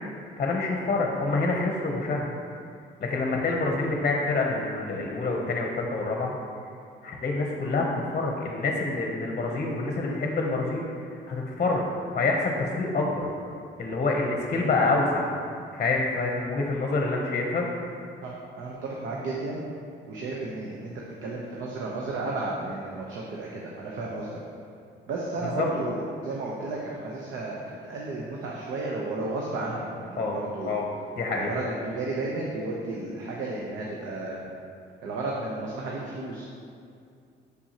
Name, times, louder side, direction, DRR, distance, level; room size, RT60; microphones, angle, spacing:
voice 1, 0.4-2.3 3.0-6.4 7.0-10.8 11.1-11.9 12.1-13.3 13.8-15.3 15.7-17.7 25.4-25.7 30.2-30.4 30.7-30.8 31.2-31.5, left 3 dB, 35° left, 0 dB, 0.7 m, -27 dB
voice 2, 18.2-19.6 20.1-20.9 21.2-24.4 25.1-30.7 31.3-34.4 35.0-36.5, right 2 dB, 80° right, -3 dB, 0.8 m, -33 dB
6.1 x 5.7 x 2.8 m, 2.4 s
cardioid pair, 90°, 20 cm